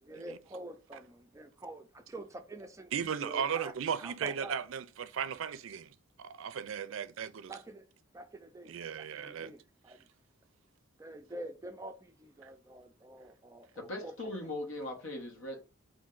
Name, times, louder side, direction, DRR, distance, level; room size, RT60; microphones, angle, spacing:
voice 1, 0.0-4.6 7.5-7.9 8.1-10.1 11.0-14.2, right 1 dB, 15° right, 0.4 m, -47 dB
voice 2, 2.9-5.9 6.2-7.5 8.7-9.5, right 7 dB, 70° right, 0.4 m, -36 dB
voice 3, 13.7-15.6, left 1 dB, 75° left, 1.2 m, -39 dB
4.3 x 2.6 x 3.7 m
head